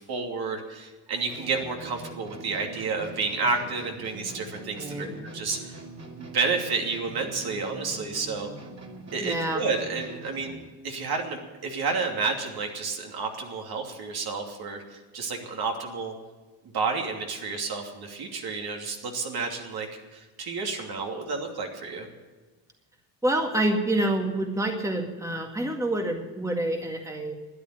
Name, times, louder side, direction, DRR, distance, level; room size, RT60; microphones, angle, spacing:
voice 1, 0.0-5.1 5.3-5.8 6.2-8.5 9.1-10.6 10.8-16.1 16.7-22.1, right 4 dB, 50° right, 1 dB, 2.9 m, -30 dB
sound 1, 1.3-10.7, right 3 dB, 35° right, 2.9 m, -43 dB
voice 2, 4.8-5.1 9.2-9.6 23.2-27.3, right 1 dB, 5° right, 3 dB, 1.9 m, -27 dB
12.5 x 9.6 x 9.1 m, 1.3 s
supercardioid pair, 75°, 47 cm